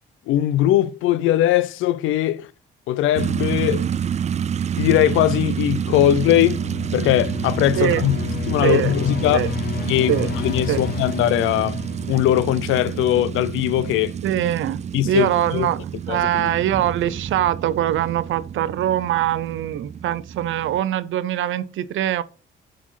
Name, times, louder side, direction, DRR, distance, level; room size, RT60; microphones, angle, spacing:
voice 1, 0.3-2.5 2.9-3.9 4.8-6.6 6.9-8.2 8.5-9.4 9.9-11.8 12.1-14.1 14.9-15.7 16.1-16.6, left 13 dB, 90° left, 0.5 m, -20 dB
sound 1, 3.2-20.8, right 8 dB, 35° right, 0.3 m, -28 dB
sound 2, 5.6-12.9, left 8 dB, 50° left, 0.8 m, -31 dB
voice 2, 8.6-8.9 9.3-9.5 10.1-10.3 10.7-10.8 14.2-14.8 15.0-15.8 16.1-22.2, right 12 dB, 80° right, 0.7 m, -22 dB
7.3 x 4.3 x 5.7 m
cardioid pair, 90°, 20 cm